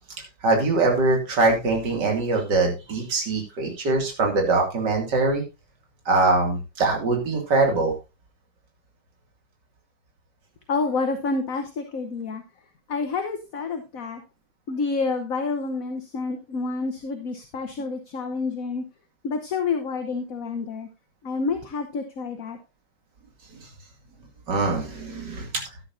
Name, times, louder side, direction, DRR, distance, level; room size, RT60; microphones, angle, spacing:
voice 1, 0.4-5.4 6.1-7.9 24.5-25.5, right 3 dB, 65° right, 1 dB, 3.1 m, -22 dB
voice 2, 10.7-12.4 12.9-14.2 14.7-18.8 19.2-20.9 21.2-22.6, left 4 dB, 50° left, 6 dB, 1.3 m, -28 dB
13.5 x 9.7 x 2.6 m, 0.26 s
omnidirectional pair, 2.0 m